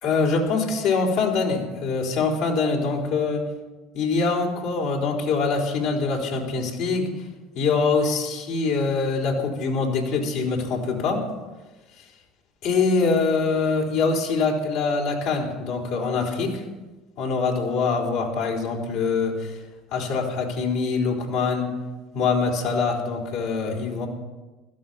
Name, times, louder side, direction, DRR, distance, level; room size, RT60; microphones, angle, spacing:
voice 1, 0.0-3.5 3.9-7.1 7.5-11.3 12.0-12.1 12.6-16.6 17.2-19.6 19.9-21.8 22.1-24.1, left 4 dB, 70° left, -1 dB, 4.0 m, -24 dB
16.0 x 13.5 x 5.7 m, 1.2 s
hypercardioid pair, 75°, 0 cm